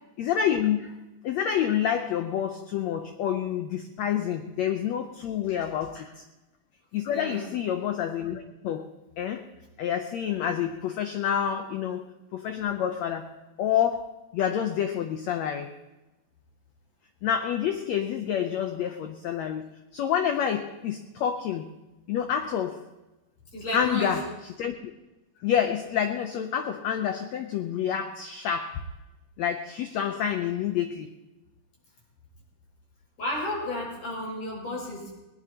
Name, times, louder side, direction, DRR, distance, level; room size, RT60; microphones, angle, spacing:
voice 1, 0.2-6.2 6.9-9.5 9.8-12.0 12.3-13.3 13.6-15.7 17.2-21.7 22.1-22.8 23.7-24.8 25.4-28.8 29.4-31.1, left 9 dB, 80° left, 6 dB, 1.5 m, -28 dB
voice 2, 7.1-7.5 23.5-24.1 33.2-35.2, left 1 dB, 45° left, -3 dB, 7.5 m, -32 dB
19.5 x 19.5 x 2.9 m, 1.0 s
omnidirectional pair, 4.1 m